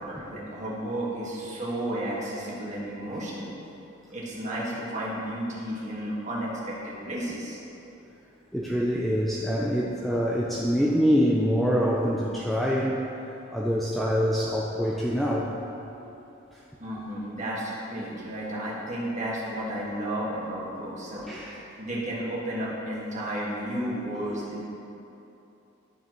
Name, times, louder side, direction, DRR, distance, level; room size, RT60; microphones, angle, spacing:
voice 1, 0.0-3.5 4.1-7.6 16.8-21.2 21.8-24.7, right 1 dB, 35° right, -6 dB, 1.7 m, -32 dB
voice 2, 8.5-13.0 13.5-15.6 16.5-16.6 21.3-21.6 23.9-24.7, equal, ahead, -5 dB, 0.5 m, -25 dB
11.5 x 6.7 x 3.1 m, 2.9 s
head